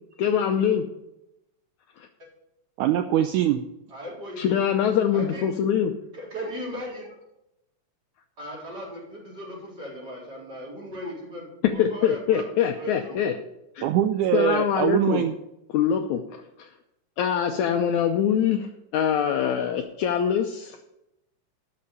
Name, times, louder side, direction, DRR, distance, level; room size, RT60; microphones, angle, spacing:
voice 1, 0.2-0.9 4.4-5.9 11.6-13.4 13.8-13.9 14.3-15.3 15.7-16.7 17.2-20.8, left 8 dB, 75° left, 5 dB, 1.8 m, -24 dB
voice 2, 2.8-3.6 13.8-15.3, right 11 dB, 80° right, 8 dB, 1.8 m, -23 dB
voice 3, 3.9-4.6 5.1-5.4 6.1-7.1 8.4-11.5 11.7-12.4 12.7-13.2, equal, 30° right, -4 dB, 4.3 m, -37 dB
12.5 x 6.7 x 6.7 m, 0.88 s
omnidirectional pair, 4.0 m